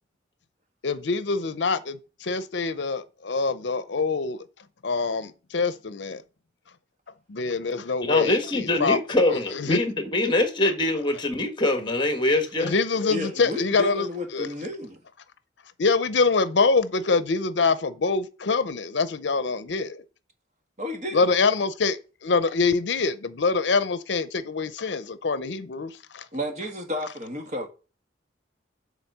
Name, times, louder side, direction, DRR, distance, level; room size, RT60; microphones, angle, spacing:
voice 1, 0.8-4.4 4.8-6.2 7.3-9.0 9.5-9.8 12.6-14.1 14.3-14.5 15.8-20.0 21.1-26.2, left 4 dB, 65° left, 0.6 m, -25 dB
voice 2, 8.0-12.7, left 2 dB, 25° left, 1.4 m, -24 dB
voice 3, 13.1-15.0 20.8-21.3 26.3-27.7, left 1 dB, 40° right, 1.6 m, -32 dB
7.3 x 4.1 x 6.7 m
head